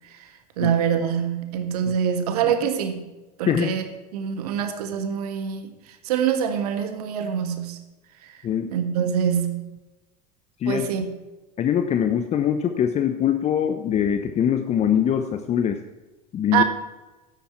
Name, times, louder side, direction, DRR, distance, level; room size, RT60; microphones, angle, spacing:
voice 1, 0.6-3.0 3.4-3.8 4.1-5.7 6.0-7.8 8.3-8.4 8.7-9.6 10.7-11.1 16.5-16.6, right 8 dB, 70° right, 1.8 m, -24 dB
voice 2, 11.6-15.8 16.3-16.6, left 9 dB, 35° left, 0.9 m, -23 dB
12.0 x 10.5 x 4.5 m
hypercardioid pair, 90°, 20 cm